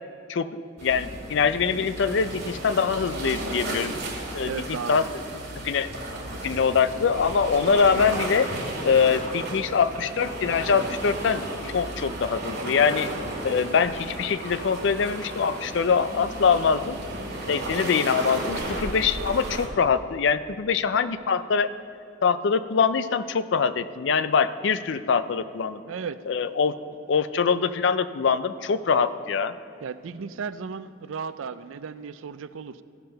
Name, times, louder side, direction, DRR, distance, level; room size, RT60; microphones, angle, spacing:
voice 1, 0.3-3.9 4.3-4.5 4.9-5.0 5.6-5.9 6.4-8.5 8.8-13.1 13.4-17.0 17.5-21.7 22.2-25.8 26.3-26.8 27.1-29.5, left 6 dB, 60° left, 13 dB, 0.4 m, -23 dB
sound 1, 0.8-19.7, right 1 dB, 55° right, 2.1 m, -34 dB
voice 2, 4.4-5.1 25.9-26.2 29.8-32.8, right 6 dB, 75° right, 14 dB, 0.4 m, -35 dB
15.0 x 5.4 x 5.7 m, 2.6 s
head